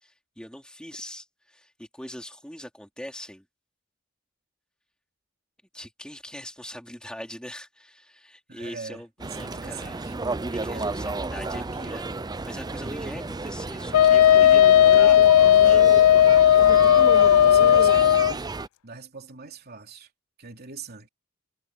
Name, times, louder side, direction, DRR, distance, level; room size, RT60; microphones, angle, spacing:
voice 1, 0.0-3.4 5.7-10.2 10.5-12.1 12.4-15.2 15.6-15.9, equal, 5° left, 4.2 m, -41 dB
voice 2, 8.5-9.0 9.3-10.1 10.7-11.1 11.5-12.0 14.8-15.1 17.4-18.5 18.8-20.1 20.4-21.1, right 4 dB, 45° right, 3.2 m, -41 dB
sound 1, 9.2-18.7, right 3 dB, 20° right, 0.5 m, -32 dB
Wind instrument woodwind instrument, 13.9-18.3, left 10 dB, 90° left, 0.3 m, -15 dB
head